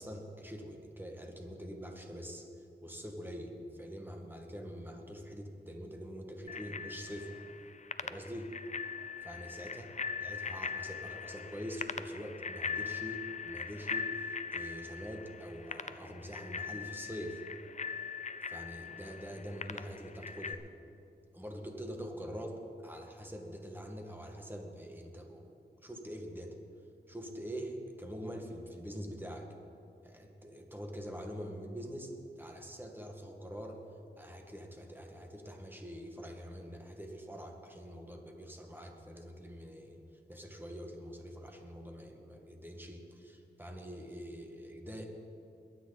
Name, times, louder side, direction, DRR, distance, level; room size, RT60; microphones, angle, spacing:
voice 1, 0.0-7.4 8.0-8.5 9.2-9.9 10.2-17.4 18.5-20.6 21.3-26.6 27.1-29.5 30.0-33.8 34.2-40.0 40.3-45.1, equal, 10° right, 2 dB, 2.0 m, -44 dB
Bicycle bell, 6.5-20.5, left 5 dB, 40° left, 0.6 m, -41 dB
22.0 x 9.6 x 4.2 m, 2.6 s
cardioid pair, 60°, 18 cm